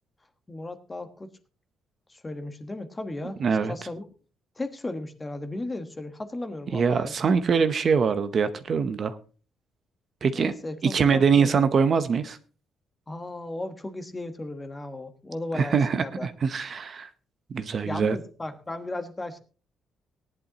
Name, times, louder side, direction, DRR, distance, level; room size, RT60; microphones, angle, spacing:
voice 1, 0.5-1.3 2.1-3.4 3.7-4.0 4.6-7.1 10.3-11.6 13.1-16.3 17.8-19.4, left 2 dB, 15° left, 7 dB, 1.3 m, -35 dB
voice 2, 3.4-3.7 6.7-9.2 10.2-10.5 10.8-12.4 15.5-17.1 17.5-18.2, right 6 dB, 40° right, 10 dB, 0.8 m, -23 dB
18.5 x 11.0 x 2.9 m, 0.37 s
cardioid pair, 155°, 0 cm